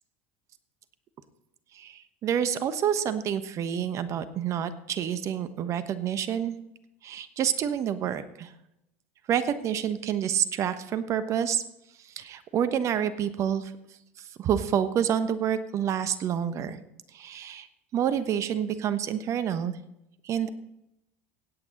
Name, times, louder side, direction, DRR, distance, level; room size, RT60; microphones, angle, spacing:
voice 1, 1.7-6.6 7.0-8.5 9.3-11.6 12.2-13.7 14.4-16.8 17.1-17.7 17.9-19.8 20.2-20.5, right 9 dB, 45° right, 12 dB, 1.1 m, -28 dB
17.0 x 8.6 x 4.0 m, 0.85 s
hypercardioid pair, 85°, 7 cm